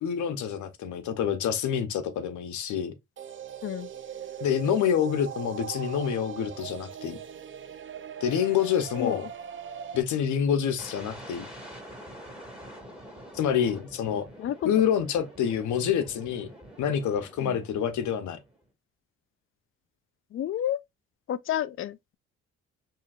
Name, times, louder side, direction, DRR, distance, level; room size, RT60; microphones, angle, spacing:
voice 1, 0.0-2.9 4.4-7.2 8.2-9.3 9.9-11.5 13.3-14.3 14.6-16.5 16.8-18.4, left 8 dB, 75° left, 0.8 m, -27 dB
sound 1, 3.2-10.0, right 8 dB, 40° right, 0.6 m, -40 dB
sound 2, 10.8-18.6, equal, 5° right, 2.1 m, -46 dB
voice 2, 20.3-20.8 21.3-22.1, left 11 dB, 45° left, 0.4 m, -30 dB
5.6 x 2.8 x 2.5 m
cardioid pair, 90°, 30 cm